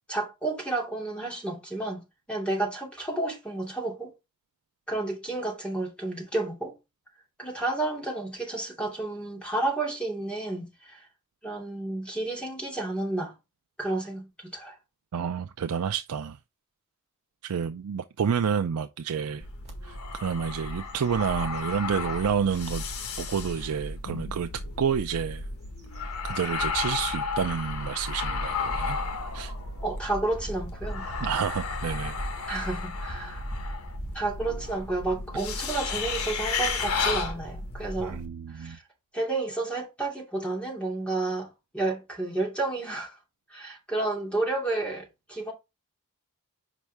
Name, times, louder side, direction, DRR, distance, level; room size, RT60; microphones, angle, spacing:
voice 1, 0.1-2.0 2.3-4.1 4.9-6.7 7.4-11.1 11.4-13.3 13.8-14.8 29.8-31.1 32.5-33.4 34.1-38.2 38.5-38.8 39.1-43.2 43.5-45.5, right 2 dB, 5° left, 2.6 m, -31 dB
voice 2, 15.1-16.4 17.4-19.4 19.8-22.8 23.2-24.5 24.8-25.4 26.0-29.0 29.3-29.5 31.2-32.2 38.0-38.8, right 7 dB, 90° right, 0.4 m, -29 dB
sound 1, 19.4-38.3, left 4 dB, 80° left, 1.4 m, -33 dB
sound 2, 19.7-19.8 20.3-20.5 20.9-22.4 23.0-23.1 24.8-34.1, right 1 dB, 30° right, 2.6 m, -44 dB
6.0 x 5.3 x 3.4 m
head